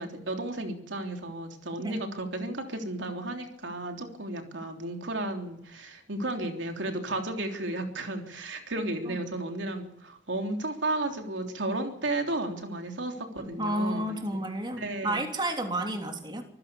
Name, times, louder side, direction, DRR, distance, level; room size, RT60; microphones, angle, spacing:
voice 1, 0.0-14.4 14.8-15.2, right 2 dB, 90° right, 4 dB, 3.5 m, -33 dB
voice 2, 13.6-16.4, right 1 dB, 25° right, 4 dB, 3.2 m, -31 dB
25.5 x 15.5 x 7.1 m, 0.78 s
head